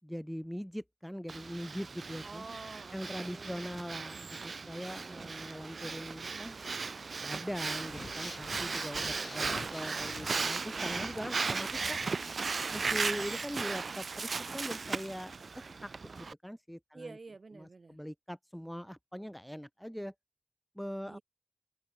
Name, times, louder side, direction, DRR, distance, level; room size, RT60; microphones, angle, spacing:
voice 1, 0.0-2.4 2.9-6.6 7.1-12.0 12.7-17.1 17.6-20.1 20.7-21.2, equal, ahead, 1.1 m, -41 dB
Breathing, 1.3-16.3, right 4 dB, 80° right, 0.5 m, -37 dB
voice 2, 2.2-3.8 5.0-5.6 16.9-18.0 21.1-21.2, right 3 dB, 60° right, 5.2 m, -49 dB
Breathing 2, 7.5-13.5, left 4 dB, 75° left, 5.4 m, -49 dB
sound 1, 9.1-16.3, right 2 dB, 30° right, 7.7 m, -65 dB
open air
wide cardioid pair, 70°, 0 cm